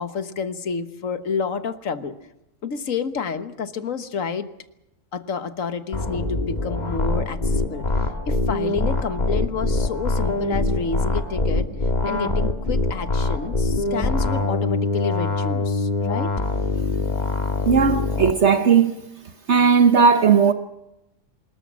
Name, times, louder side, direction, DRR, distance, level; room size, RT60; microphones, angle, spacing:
voice 1, 0.0-2.2 2.6-4.5 5.1-7.9 8.3-11.7 12.0-16.3, left 5 dB, 85° left, 1.7 m, -29 dB
sound 1, 5.9-18.3, left 2 dB, 35° left, 1.8 m, -24 dB
voice 2, 17.7-18.9 19.5-20.5, right 6 dB, 60° right, 1.2 m, -16 dB
25.0 x 21.0 x 6.2 m
omnidirectional pair, 1.3 m